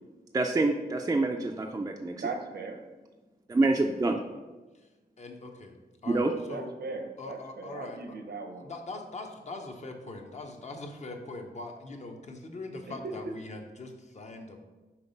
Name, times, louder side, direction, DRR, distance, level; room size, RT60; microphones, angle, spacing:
voice 1, 0.3-2.3 3.5-4.2 6.1-6.3, right 2 dB, 20° right, 2 dB, 0.3 m, -26 dB
voice 2, 2.1-2.8 6.5-8.7 13.0-13.2, right 4 dB, 80° right, 5 dB, 0.8 m, -38 dB
voice 3, 5.2-5.8 6.0-6.7 7.2-8.2 8.6-14.6, left 2 dB, 45° left, 4 dB, 0.7 m, -42 dB
5.8 x 3.9 x 5.2 m, 1.2 s
wide cardioid pair, 165°, 17 cm